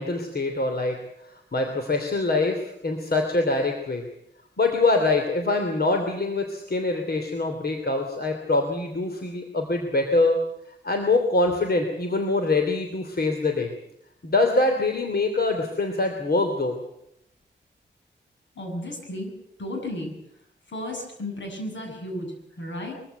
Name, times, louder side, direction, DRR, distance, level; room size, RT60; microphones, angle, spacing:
voice 1, 0.0-4.0 4.6-10.4 10.8-13.7 14.2-16.8, left 2 dB, 55° left, 4 dB, 3.0 m, -24 dB
voice 2, 18.6-19.3 19.6-20.1 20.7-22.9, left 1 dB, 80° left, 2 dB, 8.0 m, -33 dB
23.0 x 15.0 x 9.1 m, 0.77 s
wide cardioid pair, 80°, 19 cm